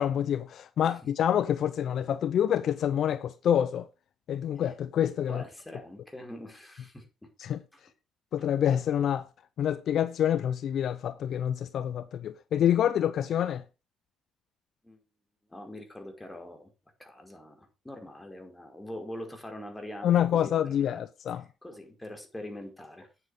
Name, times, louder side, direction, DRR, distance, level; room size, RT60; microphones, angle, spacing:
voice 1, 0.0-3.9 4.3-5.4 7.4-7.6 8.3-9.3 9.6-13.6 20.0-21.4, left 10 dB, 60° left, 0.6 m, -27 dB
voice 2, 5.3-7.3 7.7-7.8 14.8-15.0 15.5-16.7 17.0-20.5 20.8-21.0 21.6-23.1, left 1 dB, 10° left, 4.9 m, -43 dB
9.5 x 7.7 x 5.4 m
hypercardioid pair, 60°, 0 cm